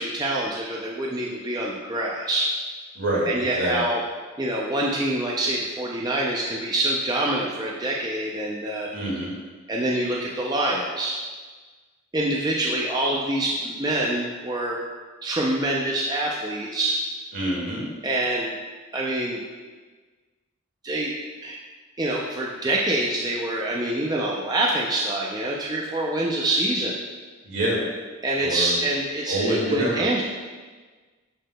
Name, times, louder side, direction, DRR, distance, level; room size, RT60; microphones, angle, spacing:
voice 1, 0.0-2.5 3.3-4.0 4.4-8.9 9.7-11.2 12.1-14.8 15.2-17.0 18.0-18.6 18.9-19.5 20.8-21.1 21.4-21.6 22.0-27.0 28.2-30.2, right 1 dB, 20° right, -3 dB, 0.4 m, -25 dB
voice 2, 3.0-3.3 3.5-3.8 8.9-9.3 17.3-17.8 27.4-27.8 28.4-28.8 29.3-30.1, right 1 dB, 65° right, -5 dB, 1.8 m, -25 dB
11.5 x 3.8 x 2.2 m, 1.4 s
head